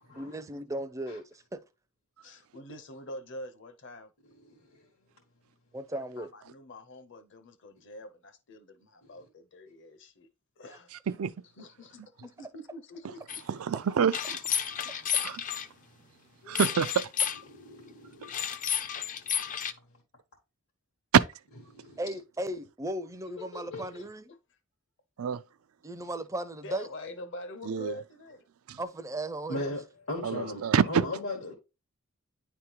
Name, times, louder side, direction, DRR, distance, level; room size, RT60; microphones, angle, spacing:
voice 1, 0.2-1.6 5.7-6.3 22.0-24.3 25.8-26.9 28.8-29.7, right 1 dB, 15° right, 0.5 m, -36 dB
voice 2, 2.2-4.1 5.9-10.3 10.6-11.0 11.6-13.4 14.8-14.9 23.4-24.4 26.5-28.5, left 1 dB, 60° left, 0.9 m, -45 dB
voice 3, 4.4-4.9 9.0-9.1 16.4-16.6 17.5-18.4 21.7-22.0 29.5-31.5, left 2 dB, 80° left, 1.5 m, -38 dB
sound 1, 13.3-13.4 14.1-15.7 16.5-17.4 18.2-19.7, left 8 dB, 40° left, 0.5 m, -31 dB
voice 4, 13.5-14.2 15.2-15.4 16.5-17.1 21.1-21.2 25.2-25.4 27.7-27.9 28.7-28.8 30.2-31.0, right 7 dB, 85° right, 0.4 m, -26 dB
9.6 x 3.5 x 2.9 m
head